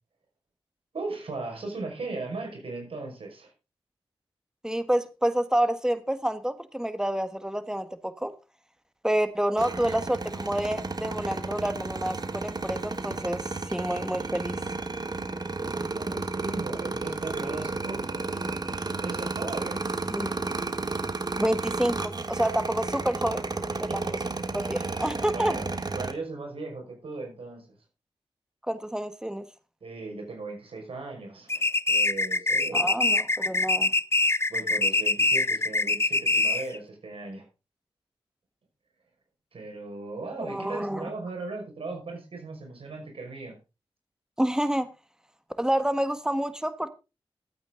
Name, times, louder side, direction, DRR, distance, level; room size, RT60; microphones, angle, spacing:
voice 1, 0.9-3.5 15.7-18.2 19.0-19.9 23.9-24.1 25.3-25.7 25.9-27.7 29.8-32.9 34.5-37.5 39.5-43.6, right 3 dB, 70° right, 5.7 m, -37 dB
voice 2, 4.6-8.3 9.0-14.6 20.1-20.4 21.4-23.5 23.8-23.9 24.5-25.6 28.7-29.4 32.7-33.9 40.4-41.1 44.4-44.9 45.6-46.9, right 1 dB, 5° right, 1.6 m, -28 dB
sound 1, 9.6-26.1, right 3 dB, 45° right, 1.4 m, -32 dB
sound 2, 31.5-36.8, left 2 dB, 25° left, 0.6 m, -24 dB
13.0 x 8.8 x 3.9 m
cardioid pair, 55°, 10 cm